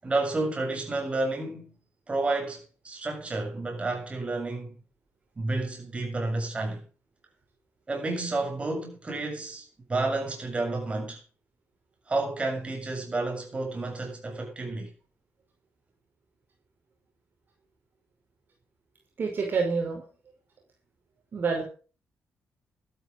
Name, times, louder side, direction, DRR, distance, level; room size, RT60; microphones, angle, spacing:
voice 1, 0.0-1.7 2.1-4.8 5.4-6.8 7.9-11.2 12.1-14.9, right 2 dB, 25° right, 7.4 m, -30 dB
voice 2, 19.2-20.0 21.3-21.6, right 5 dB, 50° right, 5.5 m, -27 dB
13.0 x 13.0 x 5.3 m
cardioid pair, 115°, 5 cm